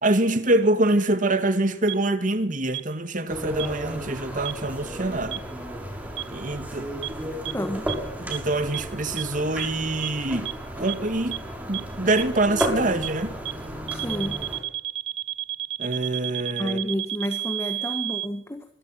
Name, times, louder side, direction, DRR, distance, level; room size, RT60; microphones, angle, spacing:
voice 1, 0.0-5.4 6.3-6.9 8.2-11.4 11.7-13.4 15.8-16.8, right 2 dB, 50° right, 2.2 m, -25 dB
sound 1, 1.9-2.0 2.7-2.8 3.6-3.7 4.5-4.6 5.3-5.4 6.2-6.3 7.0-7.1 7.5-7.6 7.9-8.0 8.3-8.4 8.7-8.8 9.2-9.3 9.6-9.7 10.0-10.1 10.5-10.6 10.9-11.0 11.3-11.4 11.7-11.8 12.2-12.3 12.6-12.7 13.0-13.1 13.5-13.6 13.9-18.3, right 15 dB, 90° right, 1.0 m, -30 dB
sound 2, 3.3-14.6, equal, 10° right, 6.0 m, -33 dB
voice 2, 7.5-7.9 13.9-14.4 16.6-18.6, equal, 15° left, 1.8 m, -30 dB
25.0 x 22.0 x 6.0 m
head